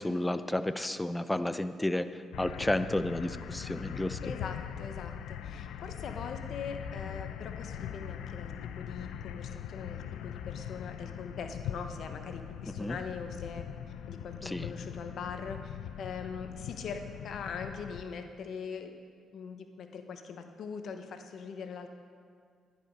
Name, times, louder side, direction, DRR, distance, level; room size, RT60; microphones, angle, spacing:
voice 1, 0.0-4.2 12.8-13.0 14.4-14.7, left 1 dB, 10° left, 12 dB, 0.5 m, -32 dB
sound 1, 2.3-18.0, left 9 dB, 90° left, 0.5 m, -41 dB
voice 2, 4.2-13.7 14.1-18.9 19.3-21.9, left 5 dB, 65° left, 6 dB, 1.0 m, -42 dB
10.5 x 10.0 x 5.4 m, 2.1 s
cardioid pair, 90°, 0 cm